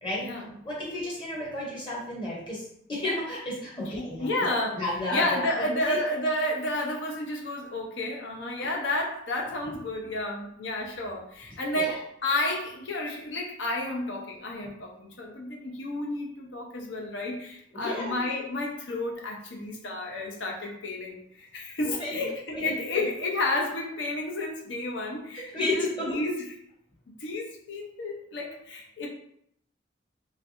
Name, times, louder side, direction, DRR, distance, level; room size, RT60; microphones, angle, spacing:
voice 1, 0.6-4.3 4.7-6.0 11.7-12.0 17.7-18.2 21.8-22.2 22.5-23.1 25.3-26.2, left 1 dB, 25° left, -5 dB, 0.8 m, -32 dB
voice 2, 3.8-4.8 5.1-26.4 27.1-29.1, left 1 dB, 80° left, 0 dB, 0.7 m, -31 dB
3.2 x 3.1 x 2.6 m, 0.70 s
head